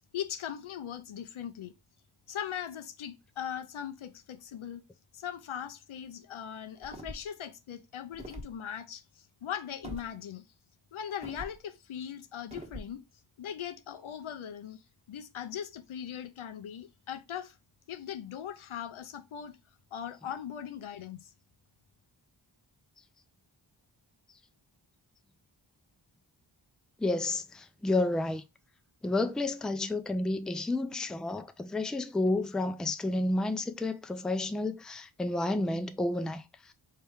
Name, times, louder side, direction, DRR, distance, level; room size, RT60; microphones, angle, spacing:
voice 1, 0.1-1.7 2.3-4.8 5.1-10.4 10.9-13.0 13.4-14.8 15.1-17.6 17.9-19.6 19.9-21.3, left 9 dB, 85° left, 0.6 m, -40 dB
sound 1, 6.8-7.4 8.1-8.5 9.8-10.1 11.2-11.6 12.5-12.9, right 1 dB, 15° right, 1.1 m, -43 dB
voice 2, 27.0-28.4 29.0-36.7, left 2 dB, ahead, 0.4 m, -31 dB
4.5 x 2.8 x 3.4 m
wide cardioid pair, 55°, 48 cm